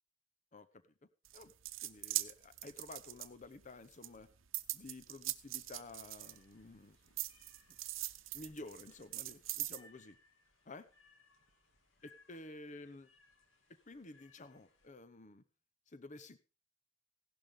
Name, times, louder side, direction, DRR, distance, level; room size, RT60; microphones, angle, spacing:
voice 1, 0.5-0.8 1.3-1.5 1.8-4.3 4.7-7.0 8.3-10.2 10.7-10.9 12.0-13.1 13.9-15.4 15.9-16.4, left 2 dB, 40° left, 12 dB, 0.8 m, -52 dB
sound 1, 1.2-3.7 4.0-6.7 7.2-9.8, right 16 dB, 85° right, 0.8 m, -41 dB
sound 2, 5.3-14.9, left 3 dB, 75° left, 2.5 m, -69 dB
16.5 x 12.0 x 3.7 m, 0.33 s
head